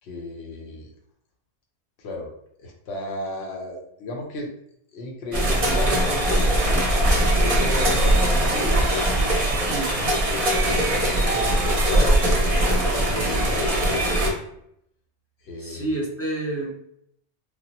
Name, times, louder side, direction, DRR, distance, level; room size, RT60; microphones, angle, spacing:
voice 1, 0.0-0.9 2.0-2.3 2.6-4.5 4.9-8.9 9.9-14.4 15.4-15.9, left 1 dB, 70° left, 0 dB, 0.9 m, -34 dB
sound 1, 5.3-14.3, right 1 dB, 35° right, 0.6 m, -21 dB
voice 2, 9.7-10.0 15.6-16.7, right 2 dB, 20° left, -4 dB, 0.4 m, -29 dB
3.4 x 2.0 x 2.8 m, 0.73 s
omnidirectional pair, 1.1 m